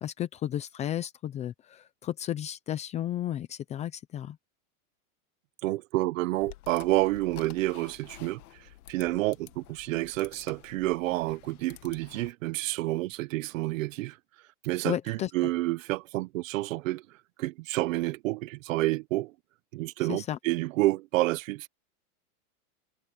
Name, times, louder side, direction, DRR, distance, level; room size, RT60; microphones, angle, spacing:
voice 1, 0.0-4.4 14.8-15.3 20.1-20.4, left 11 dB, 15° left, 0.5 m, -33 dB
voice 2, 5.6-8.4 8.9-14.2 14.6-17.0 17.4-19.3 19.7-21.7, right 18 dB, 60° right, 1.1 m, -29 dB
sound 1, 6.4-12.3, left 15 dB, 75° left, 1.9 m, -51 dB
supercardioid pair, 160°, 44 cm